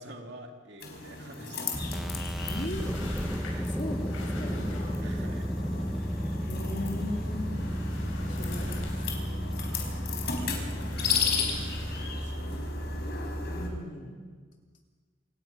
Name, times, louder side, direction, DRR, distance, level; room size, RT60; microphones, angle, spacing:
voice 1, 0.0-2.4 3.4-3.8 5.0-5.5 5.9-6.0 10.4-10.7 11.3-12.7, right 1 dB, 60° right, 3 dB, 2.5 m, -49 dB
sound 1, 0.8-13.7, left 6 dB, 55° left, 4.0 m, -36 dB
sound 2, 1.7-13.8, equal, ahead, 0.9 m, -33 dB
sound 3, 2.3-12.8, left 1 dB, 85° left, 6.0 m, -45 dB
voice 2, 2.3-2.9 3.2-4.7 6.4-7.5 8.1-8.7 9.0-9.1 9.8-10.2 10.6-10.9 11.2-11.8 13.4-14.1, left 1 dB, 40° left, 1 dB, 3.0 m, -40 dB
27.5 x 17.5 x 5.7 m, 1.5 s
head